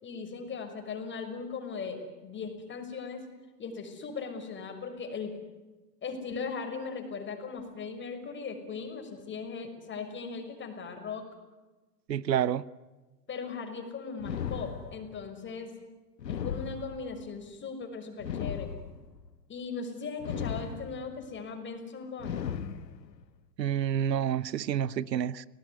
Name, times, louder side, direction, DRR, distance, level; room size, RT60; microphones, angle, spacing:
voice 1, 0.0-3.2 3.6-5.3 6.0-11.2 13.3-15.7 16.3-18.7 19.5-22.4, left 5 dB, 25° left, 6.1 m, -38 dB
voice 2, 12.1-12.6 23.6-25.4, right 9 dB, 85° right, 1.0 m, -28 dB
sound 1, 14.2-15.3 16.2-17.3 18.2-19.3 20.2-21.2 22.2-23.2, left 8 dB, 85° left, 1.7 m, -36 dB
29.5 x 19.5 x 9.7 m
hypercardioid pair, 105°, 48 cm